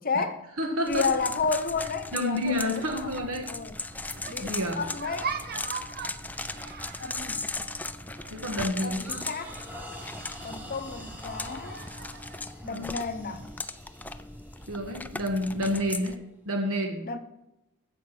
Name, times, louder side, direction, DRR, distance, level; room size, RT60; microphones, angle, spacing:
voice 1, 0.0-0.5 0.9-3.1 3.5-3.8 4.3-4.5 4.8-5.4 7.0-7.5 8.8-9.6 10.4-11.8 12.6-13.5 17.0-17.2, left 4 dB, 40° left, 0.9 m, -31 dB
voice 2, 0.6-1.1 2.1-3.5 4.4-4.9 8.3-9.2 12.6-12.8 14.7-16.2 16.4-17.1, equal, 70° right, 1.6 m, -29 dB
sound 1, 0.9-16.1, left 3 dB, 5° left, 0.4 m, -38 dB
sound 2, 3.9-12.4, right 5 dB, 45° right, 0.8 m, -42 dB
sound 3, 7.6-7.9 8.3-16.4, left 1 dB, 10° right, 1.6 m, -48 dB
14.5 x 7.0 x 6.0 m
head